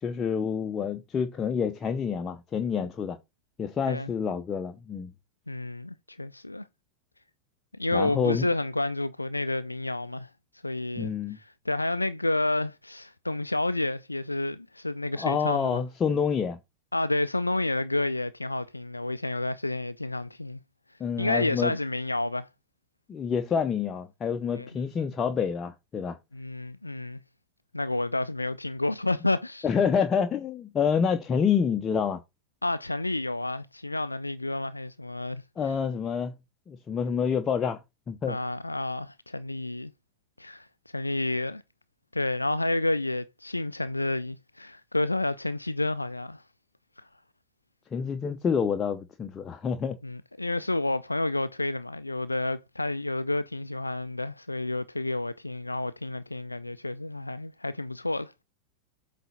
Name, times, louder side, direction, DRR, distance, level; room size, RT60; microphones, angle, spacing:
voice 1, 0.0-3.2 3.6-5.1 7.9-8.5 11.0-11.4 15.1-16.6 21.0-21.7 23.1-26.2 29.6-32.2 35.6-36.3 36.7-37.8 38.1-38.4 47.9-50.0, left 6 dB, 25° left, 0.8 m, -28 dB
voice 2, 5.5-6.7 7.8-10.3 10.6-15.8 16.9-20.6 21.2-22.5 24.5-24.7 26.3-27.2 27.7-29.7 32.6-35.4 38.3-39.9 40.4-40.7 40.9-41.6 42.1-46.4 50.0-58.3, left 2 dB, 85° left, 0.3 m, -30 dB
8.0 x 4.2 x 4.0 m
figure-of-eight pair, 90°, 0 cm